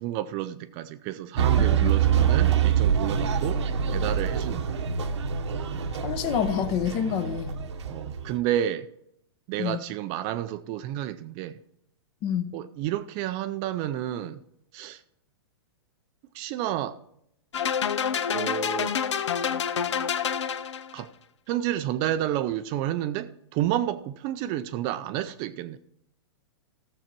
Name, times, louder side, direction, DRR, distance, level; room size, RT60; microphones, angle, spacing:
voice 1, 0.0-3.6 3.9-4.8 7.9-8.9 9.5-11.6 12.5-14.4 14.7-15.0 16.3-17.0 18.3-19.0 20.9-21.1 21.5-25.8, right 12 dB, 35° right, 0.4 m, -30 dB
sound 1, 1.4-8.4, right 8 dB, 80° right, 1.0 m, -25 dB
voice 2, 6.0-7.6 9.6-9.8 12.2-12.5, left 8 dB, 35° left, 0.8 m, -28 dB
sound 2, 17.5-21.0, left 7 dB, 90° left, 0.6 m, -27 dB
14.5 x 7.2 x 4.5 m
hypercardioid pair, 140°, 15 cm